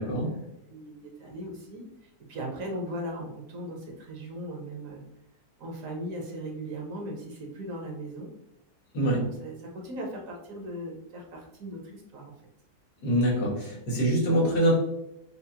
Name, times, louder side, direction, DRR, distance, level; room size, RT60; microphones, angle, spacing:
voice 1, 0.0-1.8 2.3-5.0 5.6-8.3 9.2-12.3, right 1 dB, 65° right, 0 dB, 1.1 m, -38 dB
voice 2, 13.0-14.8, right 1 dB, 75° left, -6 dB, 2.0 m, -24 dB
5.6 x 2.0 x 2.7 m, 0.83 s
omnidirectional pair, 1.6 m